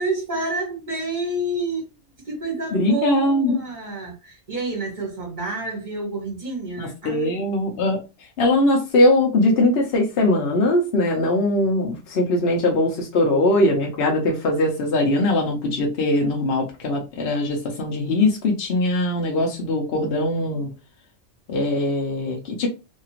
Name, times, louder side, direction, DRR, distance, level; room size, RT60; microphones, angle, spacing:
voice 1, 0.0-1.9 2.2-7.3, right 2 dB, 40° right, 1.5 m, -29 dB
voice 2, 2.7-3.6 6.8-8.0 8.4-20.7 21.5-22.7, left 1 dB, 60° left, 0.9 m, -21 dB
2.8 x 2.4 x 2.8 m
omnidirectional pair, 1.2 m